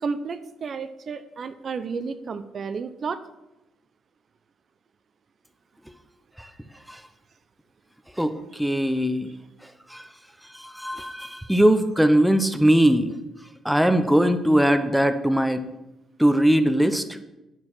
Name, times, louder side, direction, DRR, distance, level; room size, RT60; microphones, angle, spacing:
voice 1, 0.0-3.2, right 5 dB, 50° right, 11 dB, 0.5 m, -32 dB
voice 2, 8.2-9.3 9.9-10.0 10.6-13.2 13.6-15.6 16.2-17.0, right 1 dB, ahead, 9 dB, 0.7 m, -20 dB
9.6 x 4.6 x 6.0 m, 0.95 s
cardioid pair, 90°, 0 cm